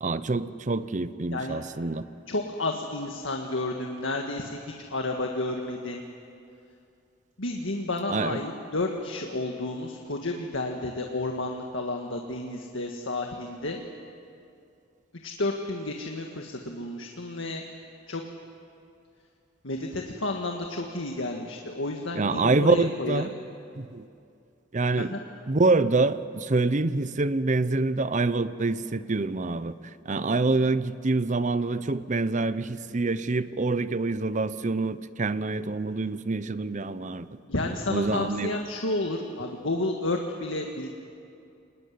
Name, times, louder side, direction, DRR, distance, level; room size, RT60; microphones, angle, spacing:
voice 1, 0.0-2.0 8.1-8.4 22.2-23.3 23.8-24.1 24.7-25.1 25.5-29.8 30.1-37.3 37.9-38.6, right 3 dB, 40° right, 14 dB, 0.8 m, -26 dB
voice 2, 2.3-4.6 4.9-6.0 7.4-13.8 15.2-17.6 18.1-18.2 19.6-23.3 24.9-25.2 37.4-40.9, left 2 dB, 85° left, 2 dB, 1.7 m, -31 dB
25.0 x 20.0 x 9.6 m, 2.5 s
head